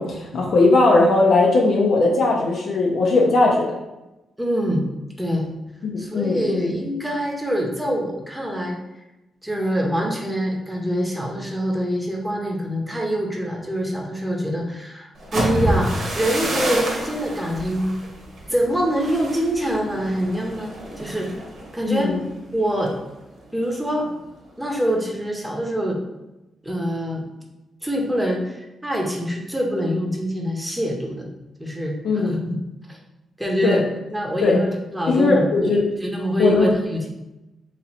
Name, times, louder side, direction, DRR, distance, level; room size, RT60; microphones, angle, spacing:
voice 1, 0.0-3.8 5.8-6.7 21.9-22.2 32.0-32.3 33.6-33.8 34.4-34.6 35.1-35.8 36.4-36.7, left 3 dB, 65° left, -1 dB, 0.6 m, -18 dB
voice 2, 4.4-4.8 5.2-5.5 6.0-8.8 9.4-18.0 18.5-20.7 21.0-21.3 21.7-22.1 22.5-22.9 23.5-24.1 24.6-26.0 26.6-27.2 27.8-31.3 31.6-32.6 32.9-33.0 33.4-33.8 34.1-37.1, equal, 10° right, 0 dB, 0.9 m, -24 dB
sound 1, 15.2-23.0 23.4-23.7 24.1-24.5, right 1 dB, 60° right, 1.1 m, -29 dB
3.0 x 2.7 x 4.1 m, 0.98 s
cardioid pair, 80°, 0 cm